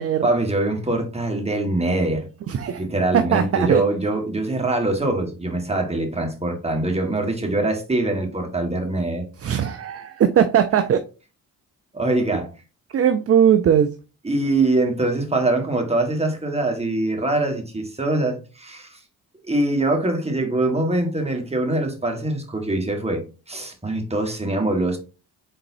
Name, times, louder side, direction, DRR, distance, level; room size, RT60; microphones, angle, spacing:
voice 1, 0.2-2.3 2.8-9.3 11.9-12.5 14.2-19.0 19.5-23.2 23.5-25.0, right 2 dB, 15° right, 1.5 m, -23 dB
voice 2, 2.5-2.8 3.1-3.8 9.4-11.0 12.9-13.9, right 8 dB, 35° right, 0.4 m, -19 dB
4.2 x 3.8 x 2.6 m
hypercardioid pair, 40°, 44 cm